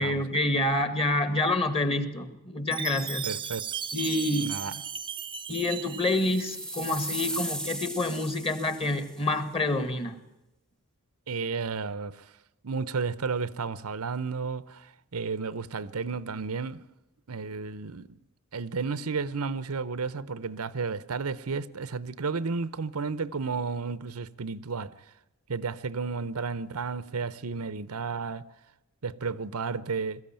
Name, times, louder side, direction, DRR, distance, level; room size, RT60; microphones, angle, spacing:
voice 1, 0.0-3.3 3.9-4.6 5.5-10.2, left 2 dB, 25° left, 1.9 m, -27 dB
Chime, 2.7-6.8, right 8 dB, 25° right, 0.6 m, -36 dB
voice 2, 3.2-3.6 4.4-4.8 11.3-12.3 12.6-16.8 17.3-18.1 18.5-24.9 25.5-28.5 29.0-30.2, right 4 dB, 90° right, 0.8 m, -32 dB
sound 1, 5.9-9.1, right 1 dB, 5° left, 0.9 m, -37 dB
21.5 x 14.5 x 8.9 m
head